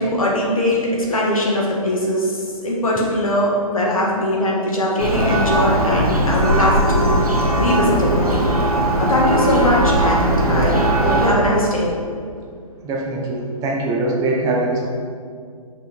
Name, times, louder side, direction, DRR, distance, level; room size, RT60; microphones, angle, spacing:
voice 1, 0.0-8.4 9.0-11.9, left 1 dB, 70° left, -3 dB, 1.8 m, -20 dB
Church bell, 5.0-11.3, right 1 dB, 85° right, 1.4 m, -19 dB
voice 2, 10.4-10.8 12.8-14.9, right 2 dB, 20° right, -1 dB, 1.0 m, -22 dB
6.1 x 5.2 x 4.4 m, 2.2 s
figure-of-eight pair, 130°, 19 cm